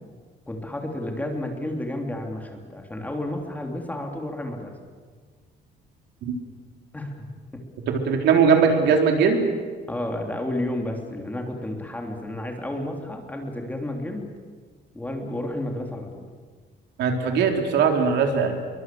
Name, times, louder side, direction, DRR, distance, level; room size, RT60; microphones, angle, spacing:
voice 1, 0.5-4.7 6.9-7.3 7.5-7.6 9.9-14.3 14.9-16.2, left 1 dB, 10° left, 2 dB, 3.3 m, -31 dB
voice 2, 7.9-9.4 17.0-18.6, right 6 dB, 75° right, 3 dB, 3.9 m, -20 dB
28.5 x 23.5 x 7.8 m, 1.6 s
cardioid pair, 160°, 18 cm